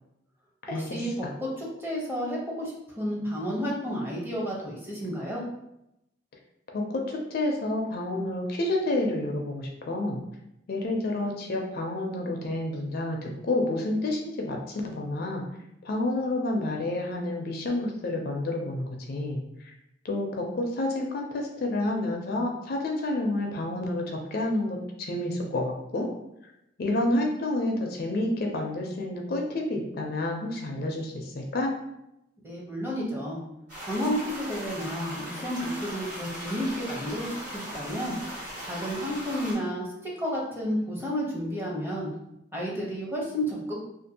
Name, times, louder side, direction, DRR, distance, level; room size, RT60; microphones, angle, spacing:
voice 1, 0.7-5.4 32.4-33.4 33.9-38.2 38.6-42.1 42.5-43.9, equal, 10° right, -4 dB, 0.6 m, -31 dB
voice 2, 6.7-10.2 10.7-15.4 15.8-19.7 20.0-26.1 26.8-31.7, left 2 dB, 50° left, 1 dB, 0.4 m, -29 dB
sound 1, 33.7-39.5, equal, 40° right, 1.3 m, -38 dB
2.5 x 2.4 x 2.7 m, 0.84 s
head